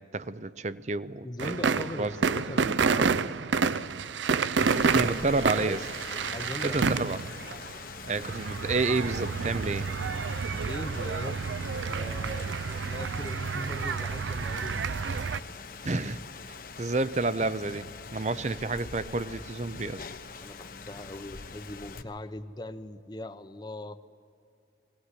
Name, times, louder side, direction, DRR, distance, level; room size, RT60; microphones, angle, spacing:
voice 1, 0.0-1.5 2.0-2.1 4.9-5.8 6.6-7.3 8.1-9.9 15.8-16.2 16.5-17.9 18.1-20.0, right 3 dB, 40° right, 15 dB, 0.6 m, -30 dB
voice 2, 1.2-3.2 5.0-5.9 6.3-7.1 10.5-11.5 11.8-12.5 12.9-14.9 18.3-18.7 20.4-24.0, left 1 dB, 25° left, 11 dB, 0.7 m, -40 dB
sound 1, 1.4-15.4, right 5 dB, 80° right, 0.5 m, -29 dB
sound 2, 2.5-3.4 5.1-5.6 7.2-7.7 9.1-9.6 10.9-11.5, right 3 dB, 60° right, 0.9 m, -48 dB
Rain, 4.6-22.0, left 5 dB, 50° left, 1.0 m, -43 dB
20.5 x 18.0 x 9.8 m, 2.5 s
head